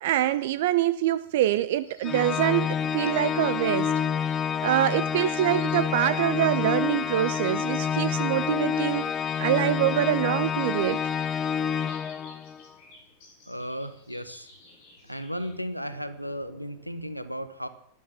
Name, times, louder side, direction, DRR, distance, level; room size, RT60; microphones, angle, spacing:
voice 1, 0.0-3.9 4.6-9.1 9.4-11.0, right 13 dB, 55° right, 15 dB, 0.5 m, -25 dB
sound 1, 1.2-17.1, left 2 dB, 50° left, 6.4 m, -53 dB
Organ, 2.0-12.6, left 7 dB, 25° left, 0.6 m, -28 dB
voice 2, 13.5-14.5 15.0-17.7, equal, 90° right, 12 dB, 1.1 m, -35 dB
12.5 x 11.0 x 7.3 m, 0.69 s
figure-of-eight pair, 90°, 0 cm